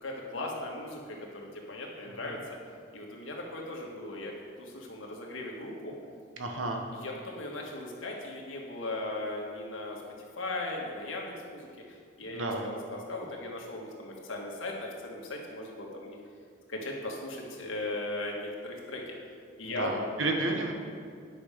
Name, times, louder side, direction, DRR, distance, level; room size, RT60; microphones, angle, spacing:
voice 1, 0.0-2.4 2.9-4.3 4.6-5.9 6.9-10.0 10.4-16.2 16.7-19.1 19.6-19.9, left 2 dB, 85° left, -1 dB, 1.6 m, -38 dB
voice 2, 6.4-6.8 12.3-12.7 19.8-20.7, right 2 dB, 85° right, 2 dB, 1.2 m, -31 dB
9.7 x 6.1 x 5.1 m, 2.2 s
head